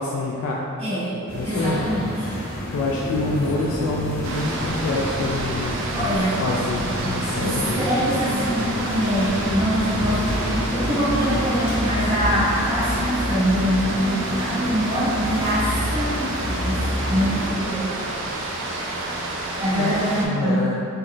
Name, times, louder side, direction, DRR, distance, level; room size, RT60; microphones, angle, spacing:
voice 1, 0.0-0.7 1.3-1.9 2.7-7.5 19.8-19.9 20.2-20.8, left 2 dB, 85° left, -3 dB, 0.3 m, -26 dB
voice 2, 0.8-2.3 5.9-6.4 7.0-10.4 10.7-17.9 19.6-20.7, equal, 25° right, -12 dB, 0.9 m, -24 dB
sound 1, 1.3-17.5, equal, 50° left, 1.1 m, -28 dB
sound 2, 4.2-20.3, right 2 dB, 60° right, 0.4 m, -30 dB
3.6 x 2.3 x 2.4 m, 2.5 s
head